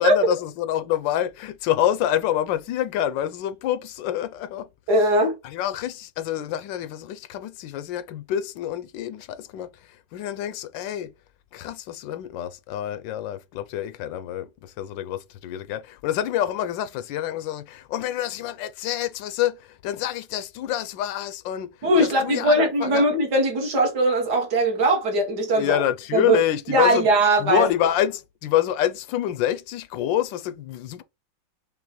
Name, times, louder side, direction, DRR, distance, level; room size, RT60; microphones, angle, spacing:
voice 1, 0.0-4.7 5.4-11.1 11.5-21.7 22.0-23.1 25.5-27.1 27.4-31.0, left 11 dB, 85° left, 1.3 m, -27 dB
voice 2, 4.9-5.4 21.8-25.8 26.1-26.4 26.7-27.7, right 1 dB, 60° right, 2.0 m, -20 dB
5.4 x 3.2 x 3.1 m
omnidirectional pair, 2.0 m